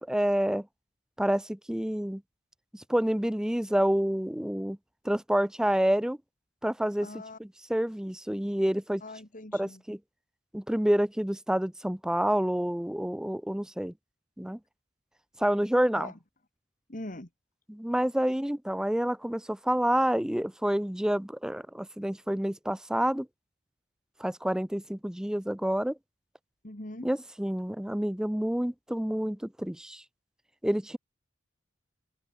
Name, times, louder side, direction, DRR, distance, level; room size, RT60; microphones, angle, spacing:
voice 1, 0.1-0.7 1.2-2.2 2.7-4.8 5.0-6.2 6.6-7.1 7.7-9.0 9.5-10.0 10.5-13.9 14.4-14.6 15.4-16.1 17.7-23.3 24.2-26.0 27.0-30.0 30.6-31.0, equal, 5° right, 0.4 m, -28 dB
voice 2, 7.0-7.4 9.0-9.8 15.9-16.2 16.9-17.3 26.6-27.1, left 1 dB, 45° left, 2.8 m, -41 dB
open air
head